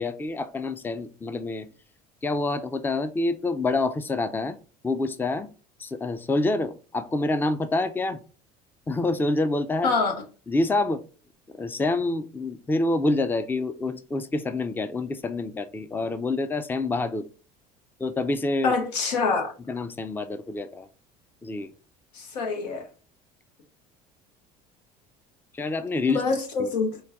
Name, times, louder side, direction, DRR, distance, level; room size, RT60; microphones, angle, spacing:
voice 1, 0.0-1.7 2.2-4.6 4.8-5.5 5.8-8.2 8.9-10.0 10.5-11.0 11.5-17.3 18.0-18.7 19.7-20.9 21.4-21.7 25.5-26.2 26.6-26.7, left 2 dB, 10° left, 12 dB, 0.4 m, -27 dB
voice 2, 9.8-10.1 18.6-19.5 22.1-22.9 26.1-27.0, left 4 dB, 90° left, 4 dB, 0.9 m, -25 dB
4.0 x 2.2 x 3.5 m, 0.36 s
hypercardioid pair, 75°, 20 cm